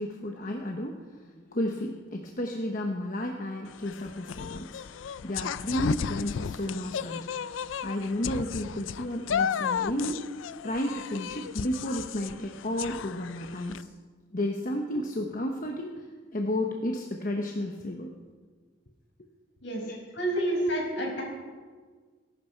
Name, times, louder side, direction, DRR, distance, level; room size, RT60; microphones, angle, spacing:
voice 1, 0.0-10.2 10.6-13.8 14.3-16.1 16.3-18.1 19.8-20.0 20.6-20.8, left 1 dB, 45° left, 2 dB, 1.1 m, -32 dB
sound 1, 3.7-13.8, left 7 dB, 85° left, 0.4 m, -34 dB
voice 2, 19.6-21.2, right 1 dB, 65° left, -1 dB, 5.5 m, -30 dB
20.0 x 11.5 x 4.6 m, 1.5 s
head